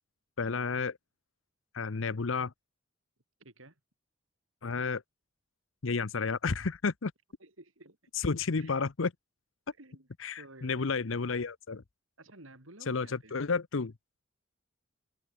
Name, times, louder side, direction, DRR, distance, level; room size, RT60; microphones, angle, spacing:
voice 1, 0.4-1.0 1.7-2.5 4.6-5.0 5.8-7.1 8.1-9.1 10.2-11.8 12.9-13.9, left 4 dB, 75° left, 0.8 m, -31 dB
voice 2, 3.4-3.7 7.4-8.0 8.6-8.8 9.8-10.1 10.4-10.9 12.2-13.4, right 2 dB, 85° right, 5.9 m, -53 dB
head